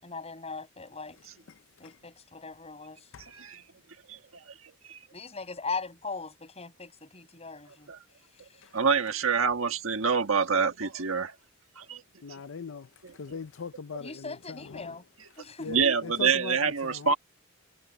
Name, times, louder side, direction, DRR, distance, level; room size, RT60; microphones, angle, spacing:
voice 1, 0.0-1.2 1.8-3.1 5.1-7.9 8.5-8.6 14.0-15.0 15.4-16.1, left 4 dB, 30° left, 7.3 m, -39 dB
voice 2, 3.3-3.6 4.1-4.2 4.9-5.0 8.7-11.3 11.8-12.0 13.0-13.1 15.7-17.1, right 6 dB, 75° right, 1.5 m, -26 dB
voice 3, 12.2-12.8 13.2-14.1 15.6-15.8 16.2-16.6 16.8-16.9, left 5 dB, 65° left, 0.6 m, -38 dB
head